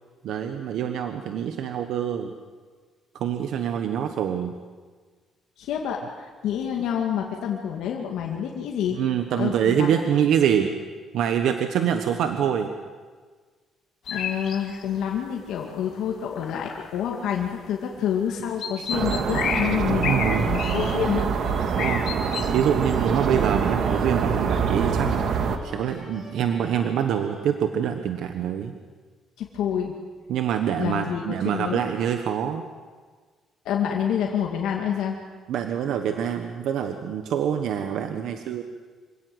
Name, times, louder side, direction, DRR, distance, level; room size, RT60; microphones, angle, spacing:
voice 1, 0.2-2.3 3.1-4.5 8.9-10.7 11.1-12.7 18.8-18.9 19.9-20.5 21.8-22.0 22.5-25.2 25.6-28.7 30.3-32.6 35.5-38.6, right 8 dB, 70° right, 6 dB, 1.3 m, -25 dB
voice 2, 5.6-9.0 9.4-9.9 14.1-21.3 29.4-29.9 30.8-31.8 33.6-35.2, left 8 dB, 80° left, 0 dB, 2.2 m, -28 dB
sound 1, 14.1-15.0 15.5-15.6 15.8-16.1 16.4-17.3 18.1-18.2 18.4-21.4 21.7-22.5, left 7 dB, 55° left, 2.0 m, -31 dB
sound 2, 18.9-25.6, right 6 dB, 55° right, 1.7 m, -25 dB
sound 3, 20.2-27.4, right 1 dB, 20° right, 6.5 m, -46 dB
26.0 x 17.5 x 8.0 m, 1.5 s
cardioid pair, 160°, 0 cm